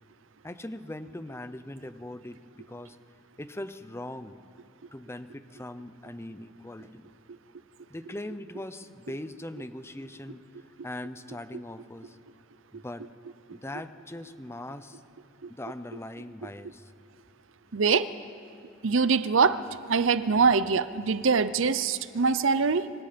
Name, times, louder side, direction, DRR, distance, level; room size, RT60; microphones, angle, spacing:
voice 1, 0.4-3.0 3.4-4.4 4.9-7.1 7.9-12.2 12.7-13.1 13.5-15.0 15.5-16.9, left 1 dB, 15° left, 11 dB, 0.8 m, -40 dB
voice 2, 17.7-18.1 18.8-19.6 19.9-22.9, right 5 dB, 80° right, 14 dB, 0.7 m, -23 dB
26.0 x 25.0 x 5.3 m, 2.8 s
head